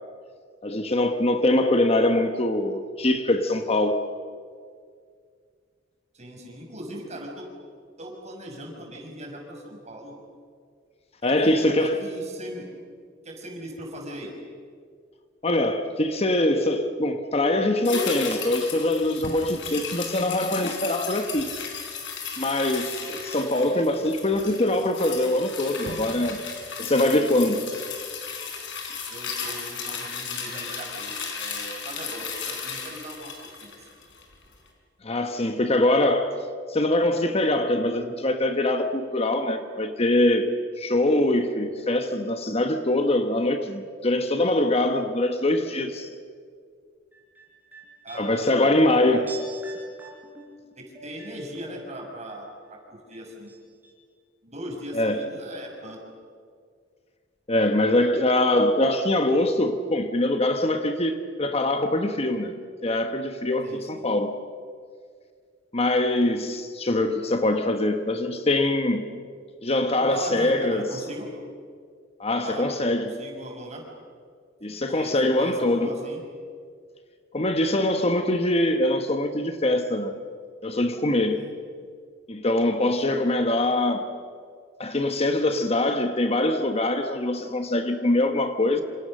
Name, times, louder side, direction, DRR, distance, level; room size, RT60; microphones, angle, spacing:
voice 1, 0.6-4.1 11.2-12.1 15.4-21.5 22.4-26.4 26.8-27.6 35.0-36.4 36.7-40.5 40.8-46.1 48.1-49.4 54.9-55.2 57.5-62.5 62.8-64.4 65.7-69.1 69.6-70.9 72.2-73.2 74.6-75.9 77.3-80.2 80.6-81.5 82.3-84.1 84.8-88.8, left 1 dB, 30° left, 1.2 m, -23 dB
voice 2, 6.1-7.5 8.0-10.2 11.2-12.7 13.2-14.3 29.1-33.9 48.0-49.3 50.8-53.5 54.4-56.0 63.6-64.0 70.0-71.3 72.4-73.8 74.9-76.2 81.3-81.5 82.8-83.2, right 1 dB, 35° right, 6.0 m, -39 dB
sound 1, 17.8-34.3 34.7-34.8, left 5 dB, 70° left, 4.6 m, -35 dB
sound 2, 47.1-52.4 52.6-53.6 53.8-53.9, left 1 dB, 10° right, 4.6 m, -44 dB
27.5 x 26.5 x 6.6 m
head